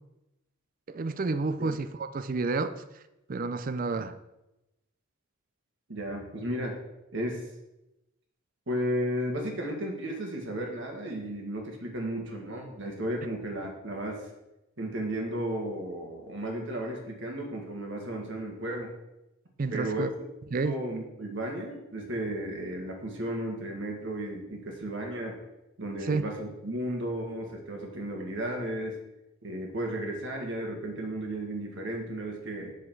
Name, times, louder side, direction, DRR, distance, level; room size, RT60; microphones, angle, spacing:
voice 1, 0.9-2.8 3.3-4.2 19.6-20.1 20.5-20.8 26.1-26.2, right 3 dB, 40° right, 13 dB, 0.4 m, -30 dB
voice 2, 5.9-6.8 7.1-7.4 8.7-14.3 14.8-18.9 19.7-20.0 20.6-25.3 25.8-28.9 29.4-32.7, right 1 dB, 60° right, 1 dB, 1.8 m, -34 dB
7.8 x 6.4 x 4.6 m, 0.94 s
head